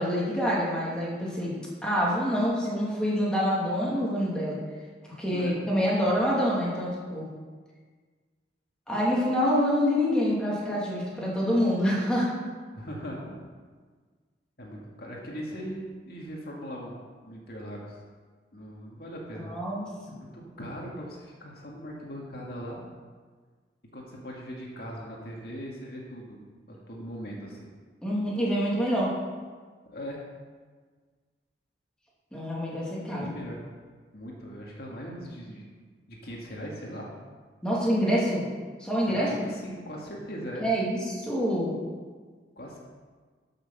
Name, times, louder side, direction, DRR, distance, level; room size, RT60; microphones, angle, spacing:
voice 1, 0.0-4.6 5.2-7.2 8.9-12.3 19.3-19.9 28.0-29.1 32.3-33.3 37.6-38.4 38.8-39.3 40.6-41.8, equal, 5° left, -6 dB, 2.8 m, -26 dB
voice 2, 5.3-5.6 12.8-13.3 14.6-17.0 17.2-18.0 18.5-19.5 20.1-22.8 23.9-26.4 26.7-27.7 29.9-30.2 33.2-33.6 34.1-35.7 36.1-37.1 39.1-40.6 42.6-42.8, equal, 60° left, -3 dB, 2.1 m, -39 dB
13.5 x 6.6 x 5.8 m, 1.5 s
head